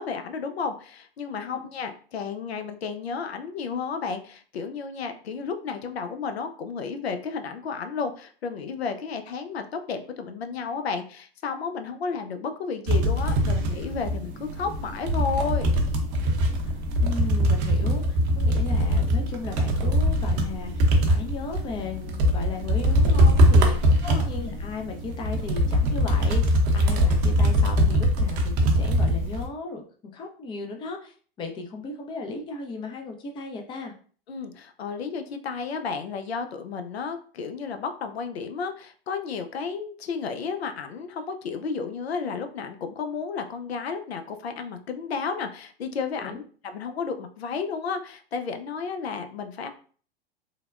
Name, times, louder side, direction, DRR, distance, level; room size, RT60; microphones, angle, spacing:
voice 1, 0.0-15.8 24.0-24.3 34.3-49.7, left 5 dB, 85° left, 7 dB, 0.5 m, -32 dB
sound 1, 12.9-29.5, equal, 45° right, 0.6 m, -22 dB
voice 2, 16.7-29.8 30.1-33.9 46.2-46.4, left 3 dB, 15° left, 3 dB, 0.4 m, -36 dB
3.2 x 2.1 x 2.3 m, 0.43 s
hypercardioid pair, 100°, 30 cm